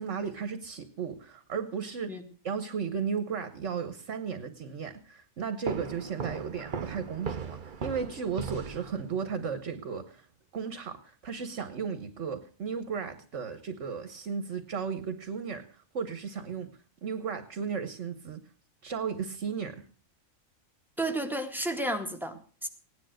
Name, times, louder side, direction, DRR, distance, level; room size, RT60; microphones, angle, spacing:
voice 1, 0.0-2.2 2.4-10.3 10.5-16.7 17.0-18.4 18.8-19.8, right 6 dB, 60° right, 10 dB, 1.5 m, -35 dB
sound 1, 5.6-9.3, right 6 dB, 40° right, 1.0 m, -37 dB
voice 2, 21.0-22.7, right 1 dB, ahead, 5 dB, 2.1 m, -32 dB
17.5 x 10.5 x 6.4 m, 0.41 s
omnidirectional pair, 1.4 m